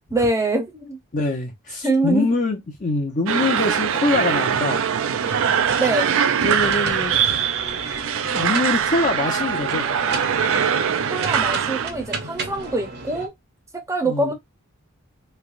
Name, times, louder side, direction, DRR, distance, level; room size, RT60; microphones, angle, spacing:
voice 1, 0.1-1.0 1.8-2.3 5.8-6.1 11.1-13.3 13.7-14.3, right 2 dB, 15° right, 0.7 m, -23 dB
voice 2, 1.1-4.9 6.4-7.2 8.3-9.9 14.0-14.3, left 3 dB, 35° left, 0.6 m, -24 dB
sound 1, 3.3-11.9, right 8 dB, 65° right, 0.4 m, -22 dB
sound 2, 5.2-13.3, right 3 dB, 50° right, 0.8 m, -32 dB
3.3 x 2.9 x 2.4 m
head